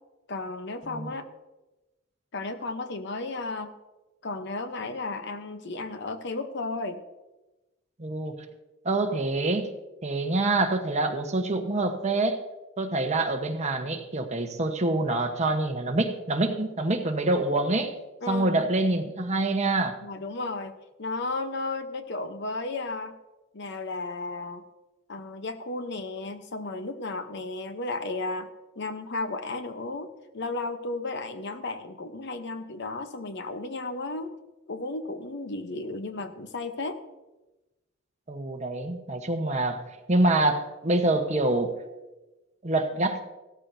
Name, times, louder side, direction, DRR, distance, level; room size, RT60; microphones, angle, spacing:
voice 1, 0.3-1.3 2.3-3.7 4.2-7.0 18.2-18.7 20.0-23.2 23.5-24.6 25.1-28.5 28.8-34.3 34.7-37.0, left 3 dB, 60° left, 9 dB, 0.9 m, -34 dB
voice 2, 8.0-8.3 8.8-9.7 10.0-12.4 12.8-17.9 18.3-20.0 38.3-41.8 42.6-43.2, right 2 dB, 35° right, 5 dB, 1.1 m, -26 dB
16.0 x 13.5 x 2.7 m, 1.1 s
head